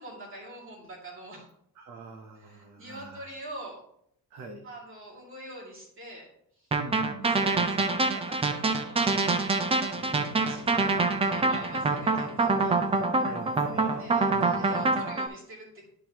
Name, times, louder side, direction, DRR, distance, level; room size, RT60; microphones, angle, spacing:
voice 1, 0.0-1.5 2.4-3.8 4.6-6.3 6.6-6.7 7.2-10.1 10.4-12.8 14.0-15.9, right 1 dB, 35° right, -3 dB, 2.4 m, -45 dB
voice 2, 1.8-3.3 4.3-4.7 6.7-7.3 13.2-14.7, right 4 dB, 55° right, 3 dB, 0.9 m, -44 dB
sound 1, 6.7-15.3, right 3 dB, 15° right, 0.4 m, -25 dB
sound 2, 10.0-15.1, left 3 dB, 55° left, 1.3 m, -46 dB
10.5 x 4.6 x 2.9 m, 0.71 s
cardioid pair, 175°, 35 cm